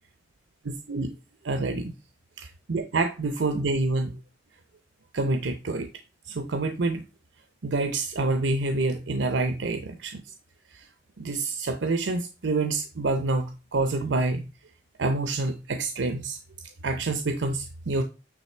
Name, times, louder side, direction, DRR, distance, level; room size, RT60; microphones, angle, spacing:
voice 1, 1.4-1.9 2.4-4.2 5.1-5.9 6.2-7.0 7.6-10.3 10.7-10.9 11.2-14.5 15.0-16.4 16.8-18.0, right 2 dB, 80° right, 7 dB, 0.7 m, -27 dB
9.0 x 3.2 x 4.4 m, 0.30 s
head